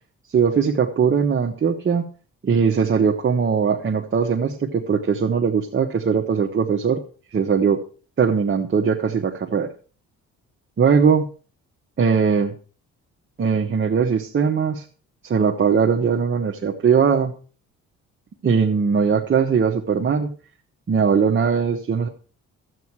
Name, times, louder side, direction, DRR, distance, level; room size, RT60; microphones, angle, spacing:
voice 1, 0.3-2.0 2.4-7.0 7.3-7.8 8.2-9.7 10.8-11.3 12.0-12.5 13.4-14.8 15.2-17.3 18.4-20.3 20.9-22.1, right 6 dB, 40° right, 1 dB, 1.3 m, -20 dB
13.0 x 8.6 x 4.7 m, 0.39 s
cardioid pair, 90°, 30 cm